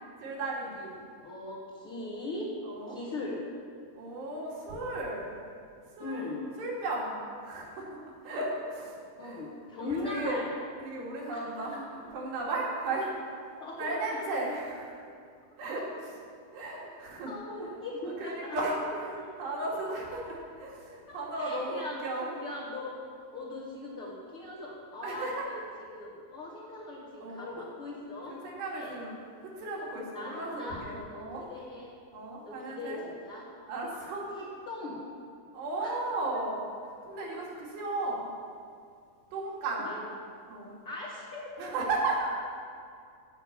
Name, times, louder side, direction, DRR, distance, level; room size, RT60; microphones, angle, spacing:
voice 1, 0.2-1.0 2.6-3.0 4.0-5.3 6.0-6.2 6.6-9.5 9.8-10.4 10.8-13.1 13.8-14.9 15.6-16.2 16.5-17.4 18.0-22.3 25.0-25.5 27.2-27.7 28.3-31.5 32.1-33.0 33.7-34.3 35.5-36.6 37.0-38.3 39.3-39.9 40.5-40.7 41.6-42.3, right 2 dB, 85° right, -4 dB, 4.7 m, -35 dB
voice 2, 1.2-2.5 2.9-3.4 6.0-6.4 9.2-10.5 11.3-11.4 13.6-14.2 17.2-18.6 19.2-19.3 21.1-22.9 23.3-25.6 25.9-28.4 28.7-29.0 30.1-31.9 32.4-33.5 34.3-35.0 35.8-35.9 39.8-40.0 40.8-41.5, left 2 dB, 55° left, -5 dB, 1.6 m, -40 dB
15.5 x 5.8 x 8.8 m, 2.3 s
omnidirectional pair, 4.7 m